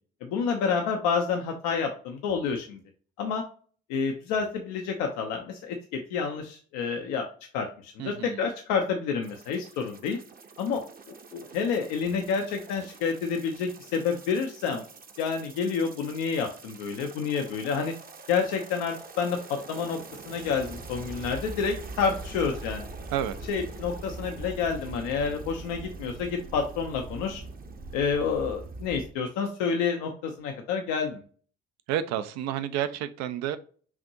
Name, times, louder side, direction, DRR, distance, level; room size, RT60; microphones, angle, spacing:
voice 1, 0.2-2.8 3.2-3.4 3.9-7.3 7.5-10.2 10.6-10.8 11.3-14.8 15.2-17.9 18.3-20.0 20.3-22.9 23.5-27.4 27.9-31.2, left 5 dB, 70° left, 0.7 m, -29 dB
voice 2, 8.0-8.4 23.1-23.3 31.9-33.6, right 10 dB, 60° right, 0.6 m, -30 dB
sound 1, 9.2-29.1, right 3 dB, 30° right, 0.8 m, -43 dB
5.8 x 2.5 x 2.8 m
hypercardioid pair, 50°, 31 cm